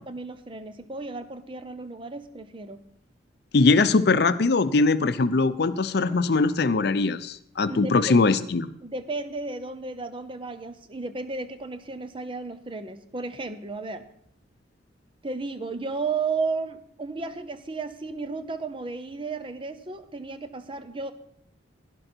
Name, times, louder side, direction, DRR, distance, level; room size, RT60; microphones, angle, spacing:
voice 1, 0.1-2.8 7.7-8.2 8.8-14.0 15.2-21.1, right 4 dB, 30° right, 10 dB, 0.7 m, -33 dB
voice 2, 3.5-8.7, left 3 dB, 60° left, 13 dB, 0.6 m, -21 dB
11.5 x 11.0 x 4.4 m, 0.70 s
head